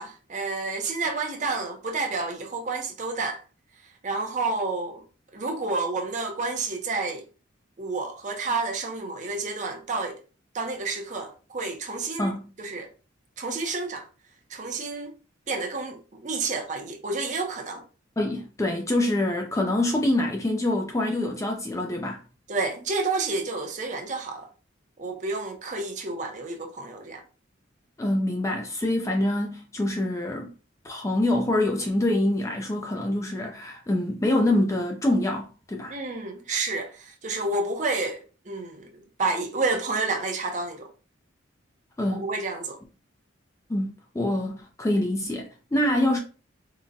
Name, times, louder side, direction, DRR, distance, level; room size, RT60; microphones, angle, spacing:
voice 1, 0.0-3.4 4.0-5.0 5.3-7.2 7.8-10.2 10.5-12.9 13.4-14.1 14.5-15.1 15.5-17.8 22.5-24.5 25.0-27.2 35.9-40.9 42.1-42.8, right 3 dB, 35° right, 0.5 m, -30 dB
voice 2, 12.2-12.5 18.2-22.2 28.0-30.5 30.8-35.9 42.0-42.3 43.7-46.2, left 1 dB, 15° left, 0.3 m, -25 dB
3.7 x 2.1 x 2.6 m
head